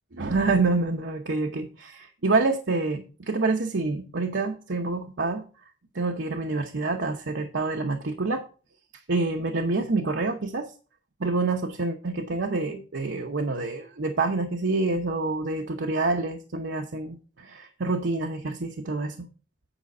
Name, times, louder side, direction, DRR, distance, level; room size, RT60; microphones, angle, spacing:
voice 1, 0.2-5.4 5.9-8.4 9.1-10.7 11.2-19.3, right 3 dB, 90° right, 3 dB, 0.9 m, -27 dB
9.0 x 5.0 x 5.3 m, 0.37 s
head